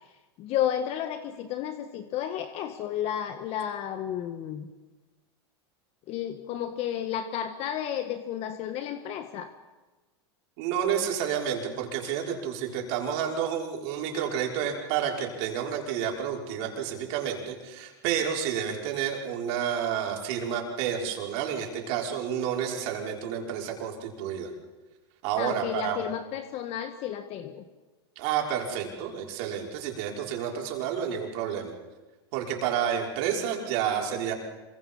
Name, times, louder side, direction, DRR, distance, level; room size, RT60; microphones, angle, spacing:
voice 1, 0.4-4.7 6.1-9.5 25.4-27.6, left 10 dB, 45° left, 8 dB, 1.7 m, -32 dB
voice 2, 10.6-24.5 25.2-26.1 28.2-31.7 32.3-34.3, right 8 dB, 60° right, 0 dB, 5.8 m, -30 dB
27.0 x 24.5 x 5.7 m, 1.2 s
supercardioid pair, 120°, 14 cm